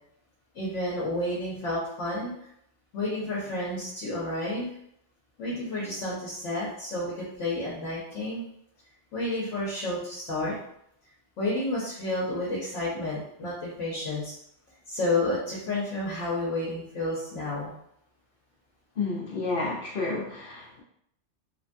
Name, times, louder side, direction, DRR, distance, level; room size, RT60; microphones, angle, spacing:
voice 1, 0.5-2.3 2.9-4.7 5.4-8.4 9.1-10.5 11.4-14.3 14.9-17.7, left 2 dB, 85° left, -6 dB, 1.1 m, -30 dB
voice 2, 19.0-20.8, left 3 dB, 55° left, -3 dB, 0.7 m, -31 dB
3.1 x 2.2 x 2.5 m, 0.73 s
omnidirectional pair, 1.2 m